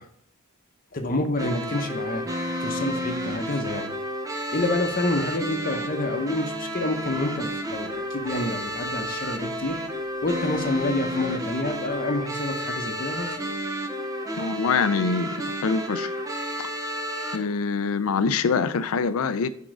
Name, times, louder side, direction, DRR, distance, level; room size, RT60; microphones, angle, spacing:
voice 1, 0.9-2.2 2.6-3.9 4.5-9.8 10.2-13.3, left 2 dB, 40° left, 0.8 m, -28 dB
sound 1, 1.4-17.4, equal, 15° right, 0.7 m, -31 dB
voice 2, 14.4-15.3 15.6-16.1 17.3-19.5, left 5 dB, 80° left, 0.4 m, -24 dB
6.0 x 3.7 x 4.8 m
head